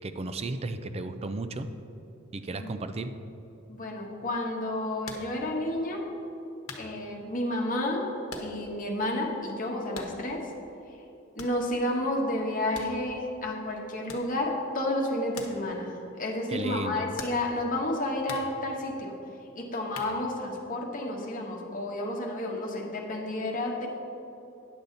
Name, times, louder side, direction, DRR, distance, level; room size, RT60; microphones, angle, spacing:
voice 1, 0.0-1.7 2.3-3.1 16.5-17.0, right 2 dB, 30° right, 10 dB, 0.4 m, -34 dB
voice 2, 3.7-6.0 6.8-8.1 8.4-10.5 11.3-19.1 19.5-23.9, left 1 dB, 40° left, 0 dB, 1.2 m, -31 dB
sound 1, 5.0-5.4 6.0-6.1 6.7-6.9 8.3-8.7 9.0-9.1 9.9-10.4 11.4-11.7 12.7-13.3 14.1-14.4 15.3-15.6 15.9-16.0 17.2-17.6 18.3-18.5 19.9-20.5, left 3 dB, 85° left, 1.0 m, -42 dB
10.0 x 6.9 x 3.9 m, 2.9 s
head